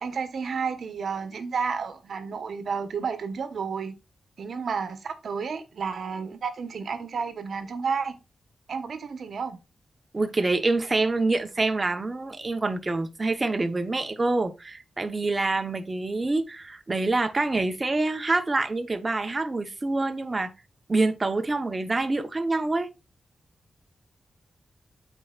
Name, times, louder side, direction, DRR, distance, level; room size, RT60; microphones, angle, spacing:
voice 1, 0.0-3.9 4.4-8.1 8.7-9.6, right 5 dB, 70° right, 1.1 m, -31 dB
voice 2, 10.1-20.5 20.9-22.9, right 2 dB, 30° right, 0.9 m, -26 dB
13.0 x 4.5 x 2.4 m
wide cardioid pair, 105°, 0 cm